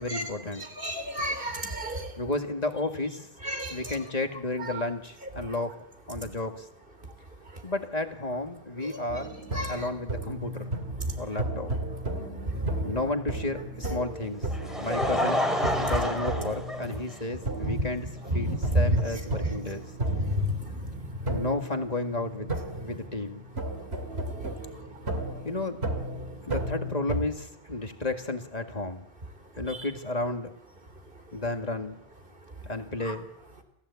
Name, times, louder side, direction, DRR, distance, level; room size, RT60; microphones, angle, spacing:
voice 1, 0.0-0.7 2.2-3.3 3.7-5.7 6.1-6.7 7.6-9.3 9.7-10.8 11.2-11.7 12.8-14.5 14.8-15.5 15.8-18.1 18.3-19.9 21.3-22.5 22.8-23.4 25.4-25.8 26.5-29.1 29.6-30.5 31.3-32.0 32.6-33.3, left 2 dB, 35° left, 6 dB, 2.0 m, -32 dB
voice 2, 0.8-2.1 3.4-3.8 4.7-4.8 9.5-9.9 17.6-17.7 18.3-18.6 20.2-20.5, equal, 55° right, 7 dB, 3.5 m, -31 dB
sound 1, 9.1-27.3, right 1 dB, 70° right, 2.6 m, -35 dB
Laughter, 14.2-17.4 18.3-18.4 19.8-19.9, left 1 dB, ahead, 2.8 m, -29 dB
28.5 x 15.0 x 8.4 m, 0.86 s
omnidirectional pair, 1.1 m